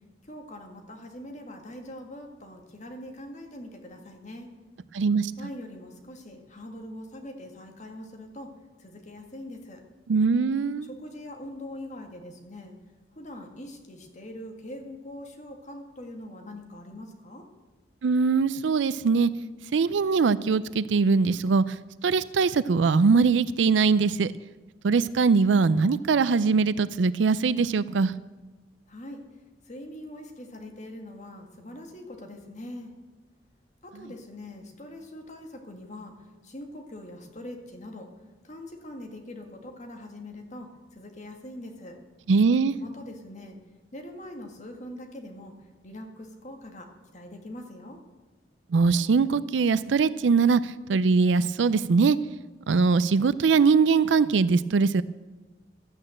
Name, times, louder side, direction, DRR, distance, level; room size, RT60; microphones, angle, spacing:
voice 1, 0.3-4.5 5.4-8.5 8.8-9.8 10.8-12.7 13.2-17.4 28.9-29.2 29.7-32.9 33.8-36.1 36.4-38.1 38.4-42.0 42.8-43.6 43.9-45.5 45.8-48.0, left 1 dB, 40° left, 3 dB, 1.8 m, -42 dB
voice 2, 4.9-5.3 10.1-10.9 18.0-19.3 19.7-21.6 22.0-24.3 24.8-28.1 42.3-42.8 48.7-52.2 52.7-55.0, right 4 dB, 85° right, 16 dB, 0.4 m, -22 dB
12.5 x 8.8 x 7.6 m, 1.3 s
head